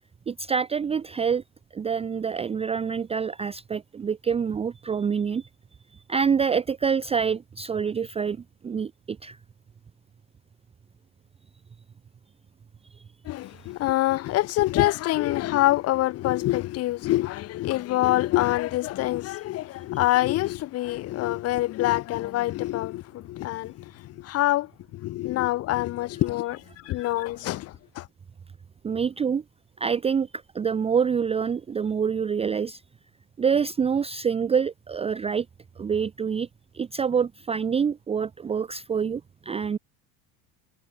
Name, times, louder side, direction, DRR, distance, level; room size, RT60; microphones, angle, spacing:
voice 1, 0.3-1.4 1.7-5.5 6.1-8.4 8.6-9.4 28.8-29.4 29.8-30.3 30.5-32.8 33.4-35.5 35.8-36.5 36.7-39.8, right 6 dB, 10° right, 0.9 m, -26 dB
voice 2, 13.2-28.1, left 16 dB, 30° left, 0.9 m, -26 dB
cardioid pair, 175°, 49 cm